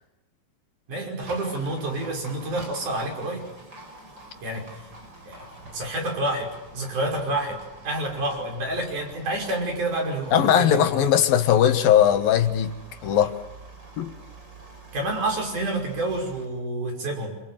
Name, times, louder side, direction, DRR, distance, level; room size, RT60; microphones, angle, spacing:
voice 1, 0.9-3.5 4.4-4.7 5.3-5.5 5.7-11.0 14.9-17.4, right 1 dB, 60° right, 7.0 m, -28 dB
Livestock farm animals working animals, 1.2-16.5, right 1 dB, 30° right, 5.6 m, -46 dB
voice 2, 10.3-12.7 13.0-13.3 14.0-14.1, left 10 dB, 85° left, 3.3 m, -19 dB
27.5 x 26.5 x 7.7 m
omnidirectional pair, 4.0 m